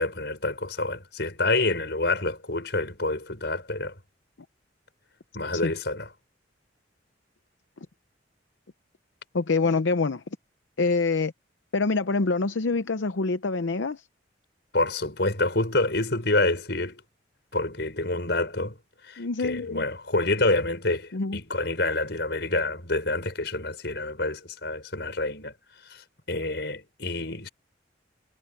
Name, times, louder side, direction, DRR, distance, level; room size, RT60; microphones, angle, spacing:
voice 1, 0.0-3.9 5.3-6.1 14.7-17.0 17.5-18.8 19.0-25.5 25.9-27.5, left 2 dB, 60° left, 6.3 m, -27 dB
voice 2, 9.3-10.2 10.8-11.3 11.7-14.1 19.2-19.8 21.1-21.4, left 3 dB, 75° left, 0.7 m, -25 dB
head